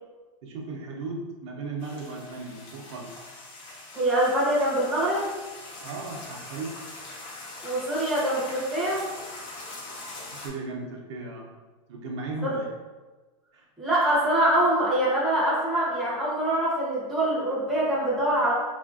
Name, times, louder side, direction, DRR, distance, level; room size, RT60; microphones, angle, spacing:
voice 1, 0.4-3.2 5.8-6.8 10.3-11.5 11.9-12.7 13.5-13.7, right 3 dB, 55° right, -1 dB, 0.6 m, -36 dB
sound 1, 1.8-10.5, left 2 dB, 45° left, 0.8 m, -42 dB
voice 2, 3.9-5.2 7.6-9.0 12.4-12.5 13.8-18.5, right 1 dB, ahead, -9 dB, 0.7 m, -24 dB
3.6 x 2.5 x 2.4 m, 1.3 s
supercardioid pair, 160°, 17 cm